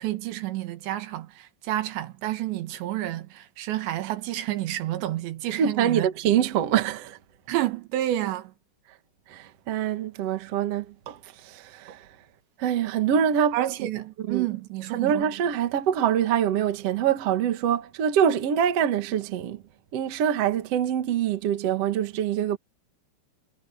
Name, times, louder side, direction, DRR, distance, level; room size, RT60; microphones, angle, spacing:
voice 1, 0.0-6.1 7.5-8.5 13.5-15.3, right 14 dB, 70° right, 3.4 m, -29 dB
voice 2, 5.6-7.2 9.3-12.0 12.6-13.6 14.3-14.4 14.9-19.6 19.9-22.6, right 9 dB, 85° right, 1.3 m, -25 dB
omnidirectional pair, 5.7 m